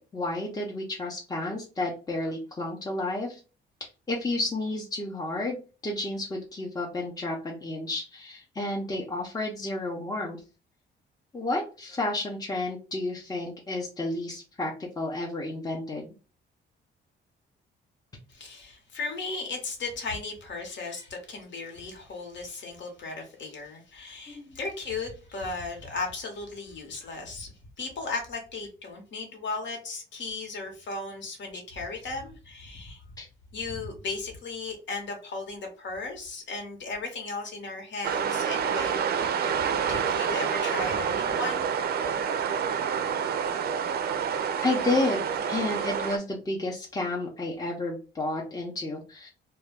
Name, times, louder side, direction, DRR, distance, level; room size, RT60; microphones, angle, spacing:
voice 1, 0.1-3.4 3.8-5.6 5.8-10.4 11.3-16.1 24.3-24.5 33.2-33.3 44.6-49.3, left 2 dB, 20° left, -2 dB, 0.6 m, -31 dB
voice 2, 18.3-33.0 33.5-39.4 39.9-41.6, left 3 dB, 65° left, 2 dB, 1.1 m, -36 dB
sound 1, 38.0-46.2, right 7 dB, 50° right, 0.4 m, -28 dB
2.2 x 2.2 x 3.4 m, 0.35 s
cardioid pair, 90°, 20 cm